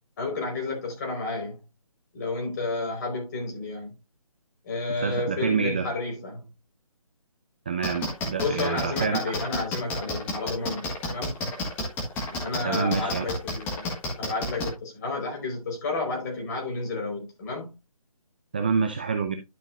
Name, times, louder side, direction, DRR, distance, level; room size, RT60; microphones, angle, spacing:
voice 1, 0.2-1.6 2.1-3.9 4.6-6.4 8.4-11.3 12.3-13.9 14.2-17.7, left 3 dB, 30° left, 4.7 m, -31 dB
voice 2, 4.9-5.9 7.7-9.2 12.6-13.3 18.5-19.4, right 5 dB, 15° right, 0.4 m, -27 dB
sound 1, 7.8-14.7, left 2 dB, 10° left, 1.5 m, -30 dB
11.5 x 6.1 x 2.6 m
figure-of-eight pair, 160°, 19 cm